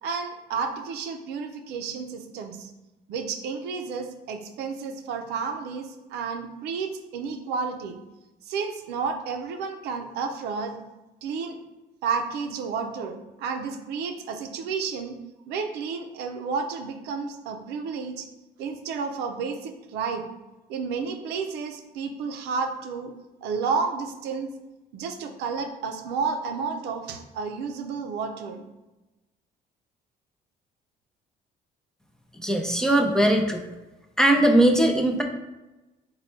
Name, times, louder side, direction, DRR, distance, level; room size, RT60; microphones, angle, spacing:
voice 1, 0.0-2.7 3.1-8.0 8.5-10.8 11.2-11.6 12.0-15.2 15.5-18.3 18.6-20.2 20.7-23.1 23.4-24.5 24.9-28.7, right 5 dB, 85° right, 5 dB, 0.5 m, -31 dB
voice 2, 32.4-33.6 34.2-35.2, right 1 dB, 5° left, 2 dB, 0.5 m, -20 dB
4.1 x 2.3 x 4.4 m, 1.1 s
cardioid pair, 110°, 17 cm